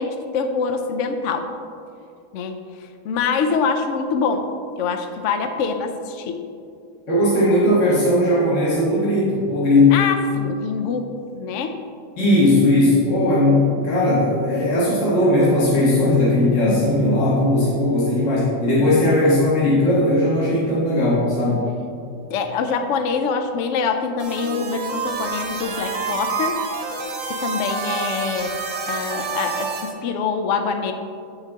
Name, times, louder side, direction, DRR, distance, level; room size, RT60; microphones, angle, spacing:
voice 1, 0.0-1.5 2.3-2.6 3.0-4.5 4.8-6.5 9.9-11.8 22.3-26.6 27.3-28.6 28.9-30.9, left 5 dB, 70° left, 7 dB, 0.7 m, -24 dB
voice 2, 7.1-10.0 12.2-21.6, left 1 dB, 45° left, -8 dB, 1.8 m, -18 dB
sound 1, 24.2-29.9, right 5 dB, 55° right, 1.2 m, -28 dB
8.4 x 6.5 x 3.6 m, 2.4 s
omnidirectional pair, 1.8 m